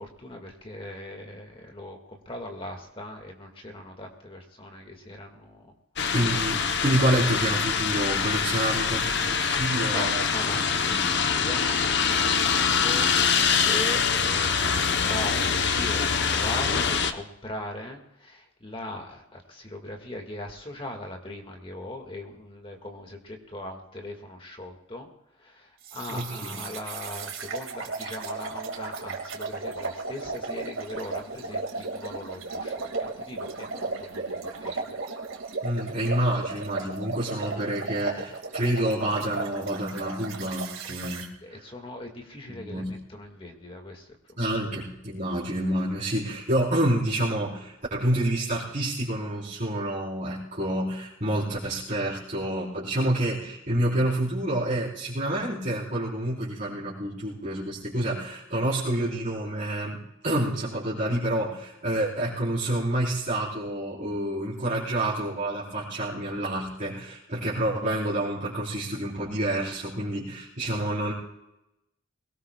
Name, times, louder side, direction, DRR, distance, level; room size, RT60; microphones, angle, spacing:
voice 1, 0.0-5.6 9.9-25.1 25.4-25.5 25.9-34.8 41.4-44.0, left 1 dB, 25° left, 3 dB, 1.9 m, -40 dB
sound 1, 6.0-17.1, left 6 dB, 55° left, 0.9 m, -24 dB
voice 2, 6.1-10.3 10.5-11.0 26.1-26.6 35.6-41.6 42.5-42.9 44.4-71.1, right 1 dB, 40° right, -9 dB, 4.0 m, -28 dB
sound 2, 25.8-41.3, right 3 dB, 80° right, 2.2 m, -35 dB
22.0 x 18.0 x 2.3 m, 0.87 s
head